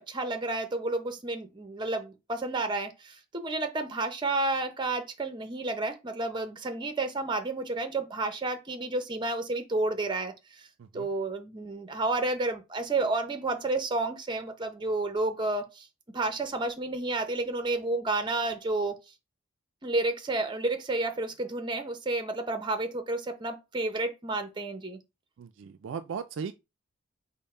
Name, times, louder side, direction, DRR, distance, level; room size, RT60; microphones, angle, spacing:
voice 1, 0.0-10.7 10.9-15.9 16.1-19.0 19.8-25.0, right 2 dB, 20° right, 0.7 m, -31 dB
voice 2, 25.4-26.5, right 6 dB, 65° right, 0.3 m, -37 dB
5.3 x 2.1 x 4.3 m
head